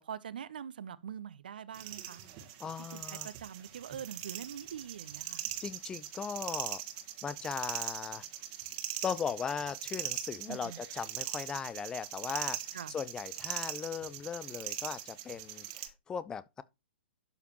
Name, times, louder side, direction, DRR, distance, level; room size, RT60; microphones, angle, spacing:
voice 1, 0.0-2.2 2.9-5.4 10.5-10.8 12.7-13.0, right 8 dB, 55° right, 0.6 m, -44 dB
sound 1, 1.7-15.9, right 13 dB, 35° right, 1.3 m, -41 dB
voice 2, 2.6-3.3 5.6-6.8 7.2-8.3 9.0-16.6, left 7 dB, 10° left, 0.3 m, -38 dB
11.5 x 5.0 x 2.9 m
figure-of-eight pair, 115°, 6 cm